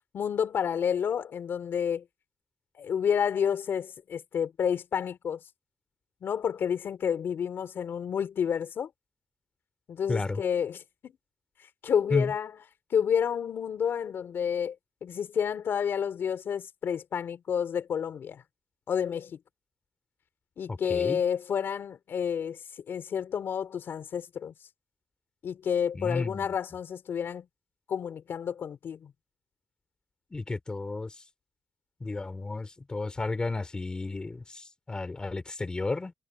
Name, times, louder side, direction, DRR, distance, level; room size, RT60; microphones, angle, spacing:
voice 1, 0.1-2.0 2.8-5.4 6.2-8.9 9.9-11.1 11.8-12.6 12.9-14.8 15.0-18.4 18.9-19.4 20.6-24.5 25.4-27.5 27.9-29.1, left 8 dB, 50° left, 3.4 m, -30 dB
voice 2, 10.1-10.4 12.1-12.3 20.7-21.2 25.9-26.5 30.3-31.2 32.0-36.1, left 3 dB, 15° left, 4.0 m, -32 dB
cardioid pair, 150°, 5 cm